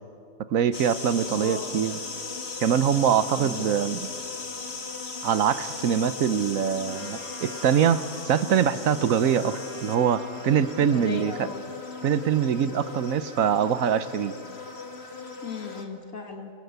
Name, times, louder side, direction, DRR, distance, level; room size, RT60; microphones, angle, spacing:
voice 1, 0.5-2.0 2.6-4.1 5.2-11.5 12.0-14.3, right 8 dB, 75° right, 14 dB, 1.2 m, -24 dB
sound 1, 0.7-15.8, left 4 dB, 50° left, 2.1 m, -37 dB
voice 2, 1.2-1.7 3.4-3.7 10.9-11.6 15.4-16.5, left 4 dB, 75° left, 4 dB, 2.4 m, -36 dB
Trumpet, 6.9-11.2, right 2 dB, 35° right, 3.3 m, -48 dB
27.0 x 25.5 x 8.1 m, 2.5 s
omnidirectional pair, 1.4 m